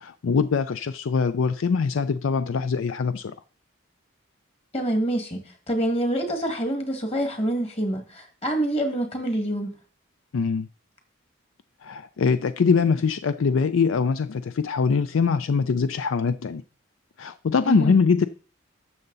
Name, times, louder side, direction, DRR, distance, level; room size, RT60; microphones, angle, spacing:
voice 1, 0.0-3.3 10.3-10.7 11.8-16.6 17.2-18.3, left 5 dB, 70° left, 0.4 m, -23 dB
voice 2, 4.7-9.8 17.7-18.0, right 1 dB, 30° left, 1.9 m, -26 dB
12.5 x 6.9 x 4.0 m
head